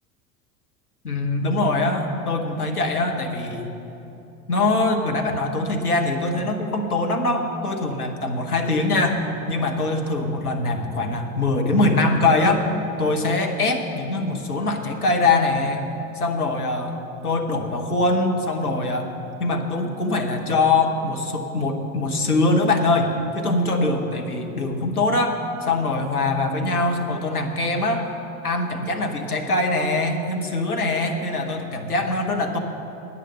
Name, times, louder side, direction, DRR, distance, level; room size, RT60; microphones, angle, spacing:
voice 1, 1.0-3.7 4.5-9.2 9.5-12.7 13.0-15.8 16.2-17.0 17.2-19.1 19.4-28.1 28.4-32.6, left 2 dB, 90° left, 4 dB, 1.1 m, -23 dB
9.9 x 9.6 x 6.6 m, 3.0 s
figure-of-eight pair, 80°, 44 cm